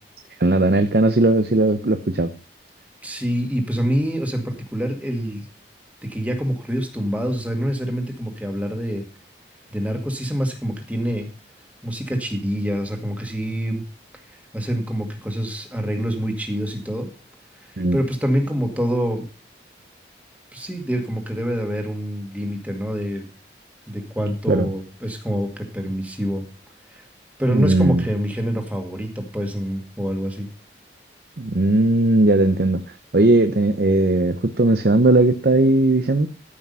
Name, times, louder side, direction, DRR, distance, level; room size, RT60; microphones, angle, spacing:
voice 1, 0.4-2.3 17.8-18.0 24.5-24.7 27.5-28.0 31.4-32.8 33.1-36.3, right 2 dB, 55° right, 9 dB, 0.7 m, -18 dB
voice 2, 3.0-5.5 6.0-9.1 9.7-11.3 11.8-13.8 14.3-17.1 17.6-19.2 20.5-23.3 23.9-26.5 26.9-27.0 27.4-30.5, equal, 10° right, 4 dB, 2.0 m, -26 dB
13.5 x 6.0 x 5.4 m, 0.37 s
head